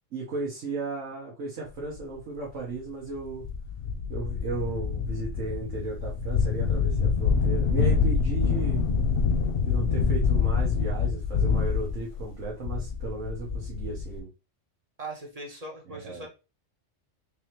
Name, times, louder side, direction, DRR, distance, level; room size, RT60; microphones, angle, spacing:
voice 1, 0.1-3.5 4.1-8.8 9.6-14.3 15.9-16.3, right 3 dB, 75° right, -4 dB, 1.4 m, -35 dB
sound 1, 2.0-2.1 2.7-2.8 3.2-14.2, left 5 dB, 55° left, 0.7 m, -26 dB
voice 2, 15.0-16.3, right 2 dB, 35° right, 0 dB, 0.8 m, -40 dB
3.7 x 3.3 x 2.9 m, 0.29 s
omnidirectional pair, 1.3 m